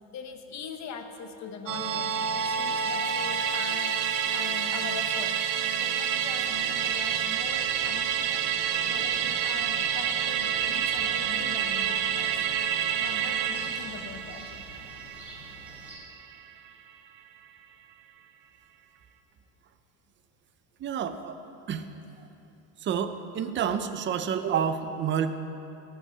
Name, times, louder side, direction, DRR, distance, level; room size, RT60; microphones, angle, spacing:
voice 1, 0.1-5.3 5.8-8.5 8.9-12.3 13.0-14.4, left 6 dB, 45° left, 6 dB, 1.1 m, -42 dB
Musical instrument, 1.7-16.3 16.7-16.8, right 8 dB, 85° right, 1.0 m, -28 dB
sound 1, 6.5-15.9, equal, 5° right, 3.4 m, -49 dB
voice 2, 20.8-21.4 21.7-21.9 22.8-25.4, right 8 dB, 30° right, 10 dB, 0.6 m, -29 dB
15.0 x 5.9 x 8.3 m, 2.9 s
cardioid pair, 135°, 39 cm